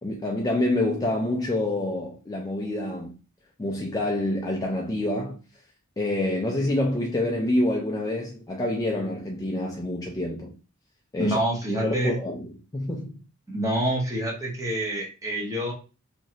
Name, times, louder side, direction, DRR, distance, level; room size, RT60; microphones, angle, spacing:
voice 1, 0.0-3.1 3.6-5.4 6.0-10.5 11.1-11.4 11.8-13.1, left 1 dB, 15° left, 0.3 m, -27 dB
voice 2, 11.2-12.2 13.5-15.7, right 1 dB, 15° right, 0.8 m, -27 dB
3.0 x 2.4 x 2.7 m
head